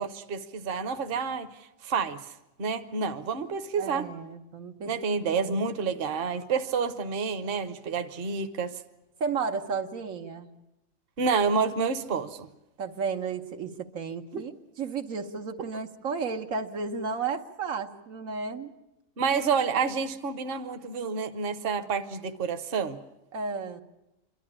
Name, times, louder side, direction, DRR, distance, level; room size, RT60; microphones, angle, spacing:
voice 1, 0.0-1.5 1.8-2.3 2.6-4.1 4.9-8.7 11.2-12.5 14.3-14.4 19.2-23.0, right 5 dB, 50° right, 1.0 m, -29 dB
voice 2, 3.8-4.9 5.3-5.6 9.2-10.5 12.8-14.5 14.8-18.7 23.3-23.8, right 5 dB, 85° right, 1.5 m, -33 dB
27.0 x 12.0 x 10.0 m
omnidirectional pair, 1.4 m